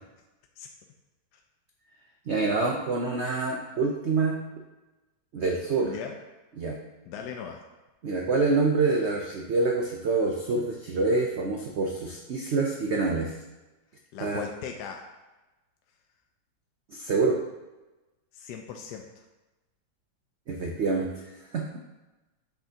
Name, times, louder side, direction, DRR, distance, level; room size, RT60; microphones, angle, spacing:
voice 1, 2.3-4.4 5.3-5.9 6.6-6.8 8.0-13.3 14.2-14.4 16.9-17.4 20.5-21.2 21.5-21.8, right 3 dB, 80° right, 1 dB, 0.6 m, -26 dB
voice 2, 5.8-6.2 7.1-7.6 14.1-15.1 18.3-19.1, left 7 dB, 75° left, 3 dB, 1.1 m, -38 dB
7.9 x 6.7 x 2.8 m, 1.1 s
omnidirectional pair, 2.1 m